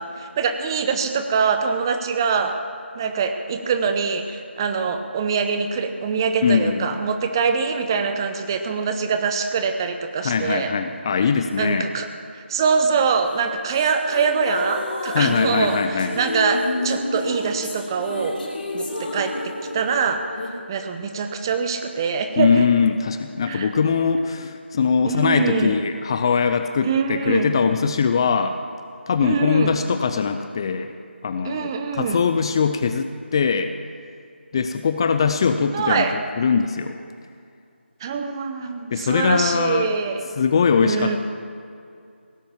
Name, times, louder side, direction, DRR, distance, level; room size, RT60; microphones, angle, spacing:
voice 1, 0.0-2.6 2.9-10.7 11.6-18.4 18.7-22.7 23.4-23.7 25.0-25.9 26.8-27.6 29.2-29.8 31.4-32.3 35.7-36.1 38.0-40.3 40.8-41.2, right 5 dB, 20° right, 7 dB, 0.8 m, -24 dB
voice 2, 6.4-7.0 10.2-11.9 15.1-16.2 22.4-28.6 29.1-30.9 31.2-33.7 34.5-36.1 36.4-37.0 38.9-39.9 40.4-41.2, left 6 dB, 25° left, 8 dB, 0.5 m, -21 dB
sound 1, 13.2-20.5, left 2 dB, 45° left, 2.6 m, -30 dB
17.5 x 10.5 x 7.3 m, 2.4 s
figure-of-eight pair, 160°, 7 cm